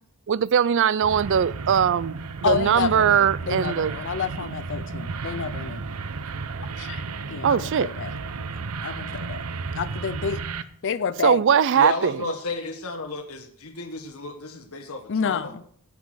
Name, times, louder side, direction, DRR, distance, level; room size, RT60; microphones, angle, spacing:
voice 1, 0.3-3.9 7.4-7.9 11.2-12.1, right 8 dB, 55° right, 0.4 m, -20 dB
sound 1, 1.0-10.6, right 4 dB, 85° right, 0.7 m, -33 dB
voice 2, 2.4-5.8 6.7-7.0 7.3-8.2 8.8-9.4 9.8-10.4 10.8-11.4 15.1-15.6, left 6 dB, 55° left, 0.5 m, -29 dB
voice 3, 11.7-15.5, left 3 dB, 75° left, 1.6 m, -32 dB
17.0 x 6.1 x 6.4 m
head